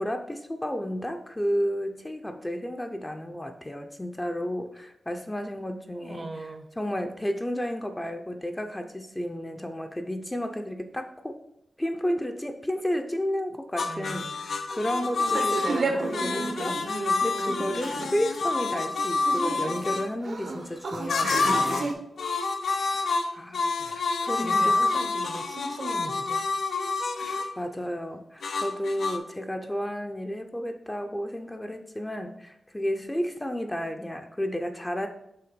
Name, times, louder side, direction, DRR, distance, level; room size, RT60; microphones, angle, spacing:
voice 1, 0.0-6.5 6.8-11.4 11.8-22.0 22.9-24.8 27.2-35.1, equal, 15° left, 5 dB, 0.5 m, -32 dB
voice 2, 5.9-6.7 13.8-14.4 21.6-21.8 24.4-26.5, right 2 dB, 50° right, 6 dB, 0.7 m, -40 dB
sound 1, 13.8-20.1 21.1-21.9 22.2-27.5 28.4-29.2, left 3 dB, 80° left, 0.5 m, -28 dB
sound 2, 15.2-21.9, right 3 dB, 75° right, 1.0 m, -32 dB
5.7 x 3.4 x 5.1 m, 0.77 s
wide cardioid pair, 100°, 0 cm